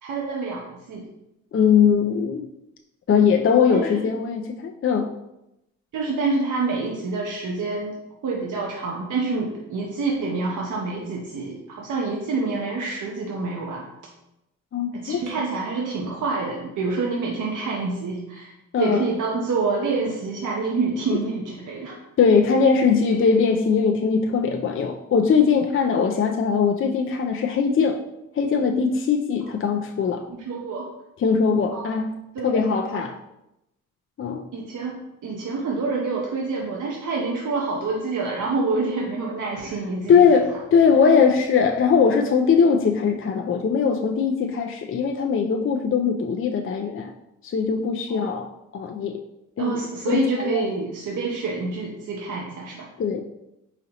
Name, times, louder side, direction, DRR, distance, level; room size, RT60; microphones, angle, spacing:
voice 1, 0.0-1.1 3.7-4.0 5.9-13.8 14.9-18.5 18.8-22.0 30.4-30.9 31.7-32.0 32.3-32.6 32.9-33.0 34.5-40.4 48.1-48.2 49.6-52.9, right 3 dB, 70° right, 0.7 m, -27 dB
voice 2, 1.5-2.5 3.1-5.2 14.7-15.2 18.7-19.1 21.1-21.2 22.2-28.0 28.3-30.3 31.2-33.1 34.2-34.5 40.1-47.1 47.4-49.2 49.6-50.7 53.0-53.2, left 6 dB, 40° left, 0.4 m, -21 dB
4.0 x 3.8 x 2.8 m
supercardioid pair, 50°, 32 cm